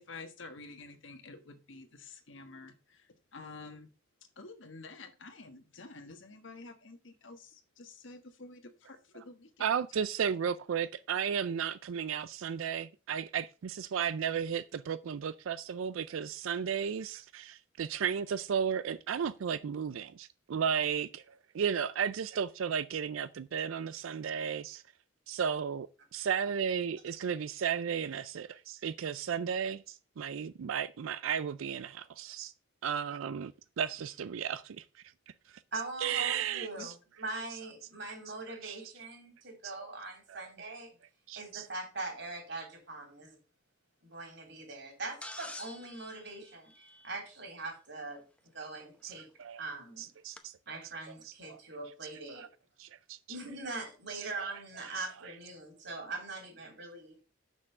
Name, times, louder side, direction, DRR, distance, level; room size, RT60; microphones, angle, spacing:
voice 1, 0.0-3.9 4.4-9.6 36.8-36.9, left 3 dB, 70° left, 1.3 m, -49 dB
voice 2, 9.6-21.2 21.5-24.8 25.3-25.9 26.1-32.5 32.8-34.8 36.0-36.9 38.6-38.8 39.8-39.9 40.3-40.5 41.3-41.7 49.0-49.1 49.4-49.6 50.0-50.8 51.2-51.6 52.3-52.5 52.8-53.2 54.1-54.2 54.8-55.1, right 7 dB, 85° right, 0.4 m, -34 dB
voice 3, 35.7-40.9 41.4-43.4 44.0-46.7 47.0-48.2 48.5-49.3 49.6-50.1 50.7-52.5 53.3-57.2, right 2 dB, 60° right, 3.5 m, -42 dB
sound 1, 45.2-47.5 49.1-49.2 50.4-50.5, left 2 dB, 5° left, 0.7 m, -47 dB
6.7 x 6.1 x 5.4 m
head